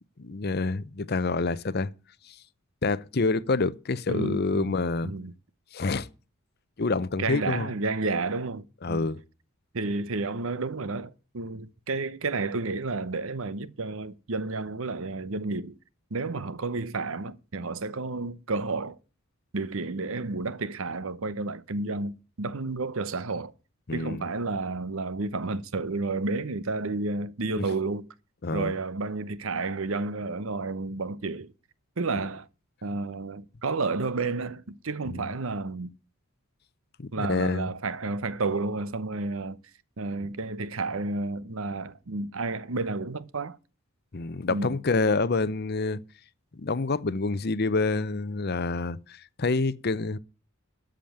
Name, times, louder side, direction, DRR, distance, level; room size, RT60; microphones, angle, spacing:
voice 1, 0.2-1.9 2.3-2.4 2.8-5.1 5.7-6.1 6.8-7.7 8.8-9.2 23.9-24.2 28.4-28.7 35.1-35.2 37.0-37.7 44.1-46.0 46.6-50.2, left 3 dB, 45° left, 0.6 m, -27 dB
voice 2, 4.1-4.8 5.0-5.3 7.2-9.1 9.7-15.8 16.1-19.0 19.5-23.5 23.9-28.1 28.5-31.5 32.0-32.5 32.8-35.9 37.1-39.6 40.0-43.6 44.5-44.8, right 3 dB, 65° right, 0.8 m, -31 dB
13.5 x 5.1 x 8.8 m
head